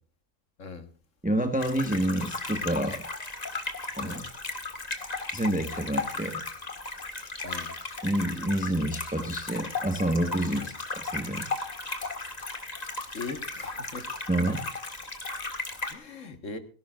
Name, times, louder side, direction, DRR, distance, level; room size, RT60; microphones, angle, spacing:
voice 1, 1.2-3.0 4.0-4.2 5.3-6.4 8.0-11.5 14.3-14.6, right 1 dB, 5° right, 5 dB, 1.3 m, -28 dB
sound 1, 1.6-15.9, left 3 dB, 30° left, 1.8 m, -36 dB
voice 2, 13.1-14.0 15.9-16.6, left 4 dB, 70° left, 7 dB, 2.0 m, -40 dB
18.5 x 17.5 x 2.5 m, 0.38 s
omnidirectional pair, 1.4 m